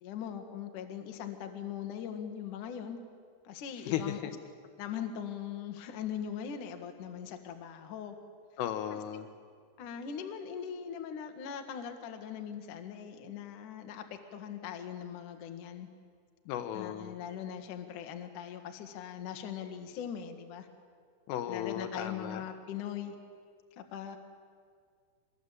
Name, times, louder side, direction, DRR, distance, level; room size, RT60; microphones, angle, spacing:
voice 1, 0.0-3.0 3.4-4.2 4.8-8.1 8.9-9.0 9.8-14.0 14.3-15.9 16.7-20.7 21.5-23.2 23.8-24.2, left 8 dB, 60° left, 5 dB, 2.2 m, -40 dB
voice 2, 3.9-4.4 8.6-9.3 16.5-17.2 21.3-22.4, left 10 dB, 75° left, 8 dB, 3.7 m, -35 dB
25.0 x 21.5 x 8.4 m, 2.1 s
omnidirectional pair, 5.9 m